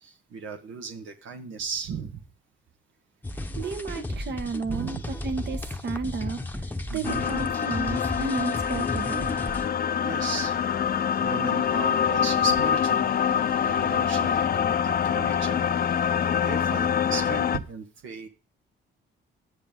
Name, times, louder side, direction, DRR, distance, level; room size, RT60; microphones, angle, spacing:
voice 1, 0.0-2.2 4.7-5.0 6.9-7.2 10.0-10.6 11.1-18.3, right 5 dB, 80° right, 4 dB, 1.5 m, -36 dB
sound 1, 3.2-9.7, left 1 dB, 10° left, 1.0 m, -34 dB
voice 2, 3.6-9.3, right 4 dB, 60° right, 8 dB, 1.6 m, -33 dB
sound 2, 7.0-17.6, left 8 dB, 50° left, 0.7 m, -25 dB
10.5 x 9.8 x 3.8 m, 0.35 s
cardioid pair, 90°, 20 cm